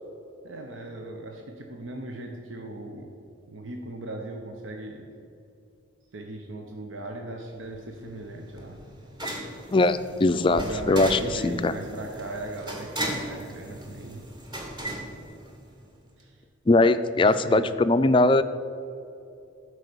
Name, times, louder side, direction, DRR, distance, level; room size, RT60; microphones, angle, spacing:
voice 1, 0.4-3.1 3.5-5.1 6.1-8.8 10.4-14.2 16.2-16.4 17.1-17.7, right 2 dB, 80° right, 2 dB, 0.9 m, -38 dB
sound 1, 7.6-16.0, right 1 dB, 20° right, 1.3 m, -37 dB
voice 2, 9.7-10.6 10.9-11.7 16.7-18.4, left 2 dB, 25° left, 12 dB, 0.3 m, -20 dB
12.0 x 4.8 x 6.8 m, 2.6 s
head